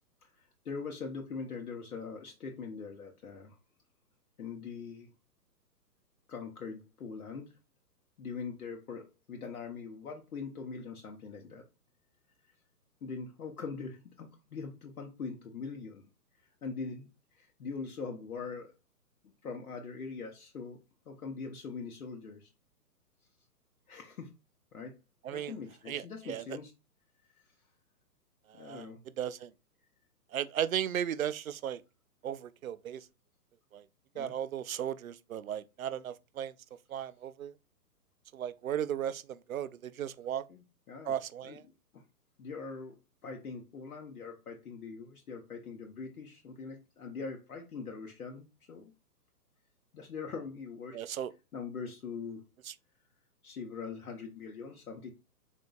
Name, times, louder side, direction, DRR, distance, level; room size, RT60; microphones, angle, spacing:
voice 1, 0.2-3.6 4.4-5.1 6.3-7.5 8.2-11.6 13.0-16.0 16.6-17.1 17.3-18.7 19.4-20.8 21.1-22.5 23.9-24.3 24.7-24.9 25.3-26.7 28.5-29.0 34.1-34.3 40.5-41.1 41.4-41.6 41.9-42.0 42.4-43.0 43.2-48.9 49.9-51.0 51.5-52.4 53.4-55.1, left 5 dB, 65° left, 0.9 m, -42 dB
voice 2, 25.9-26.4 28.5-28.9 29.2-29.5 30.3-31.8 32.2-33.1 33.7-33.8 34.2-36.5 36.9-37.5 38.3-40.4 41.1-41.6 50.9-51.3 52.7-52.8, right 10 dB, 60° right, 0.5 m, -36 dB
4.6 x 4.1 x 2.3 m
figure-of-eight pair, 125°, 48 cm